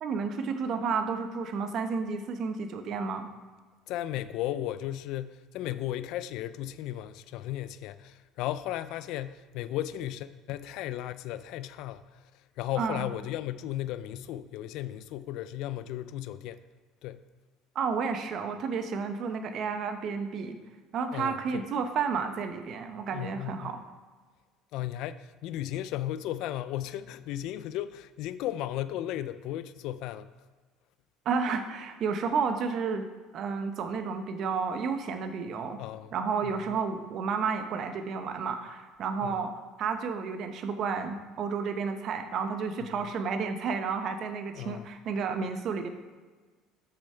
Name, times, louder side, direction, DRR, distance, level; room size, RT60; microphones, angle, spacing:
voice 1, 0.0-3.3 12.8-13.1 17.7-20.6 20.9-23.8 31.2-33.1 33.3-35.8 36.1-39.5 39.8-45.9, right 5 dB, 50° right, 0.8 m, -31 dB
voice 2, 3.9-16.6 17.0-17.2 21.1-21.6 23.1-23.7 24.7-30.3 35.8-36.1 36.4-36.8 39.2-39.4 44.6-44.9, left 13 dB, 70° left, 0.3 m, -35 dB
6.9 x 6.5 x 4.4 m
cardioid pair, 125°, 0 cm